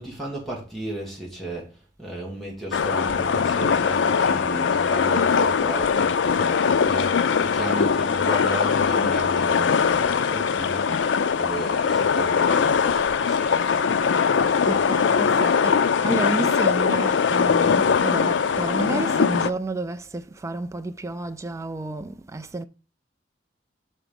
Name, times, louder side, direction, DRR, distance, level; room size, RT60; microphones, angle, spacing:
voice 1, 0.0-11.0 11.3-13.7, right 1 dB, ahead, 1.5 m, -34 dB
sound 1, 2.7-19.5, left 6 dB, 75° left, 0.4 m, -21 dB
voice 2, 14.6-22.6, right 2 dB, 15° right, 0.3 m, -30 dB
6.0 x 4.2 x 5.2 m
head